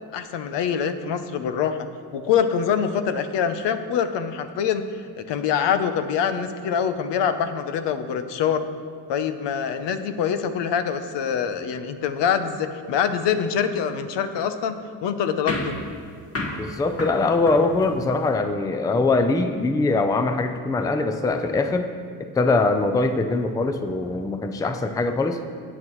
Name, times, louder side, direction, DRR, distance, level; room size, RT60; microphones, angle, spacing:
voice 1, 0.1-1.9 2.1-8.6 9.1-14.7 15.0-15.8, left 7 dB, 85° left, 10 dB, 0.8 m, -25 dB
sound 1, 15.5-18.4, left 2 dB, 35° left, 1.6 m, -32 dB
voice 2, 16.6-21.9 22.3-25.4, left 3 dB, 10° left, 7 dB, 0.4 m, -22 dB
18.5 x 6.2 x 3.1 m, 2.2 s
cardioid pair, 105°, 42 cm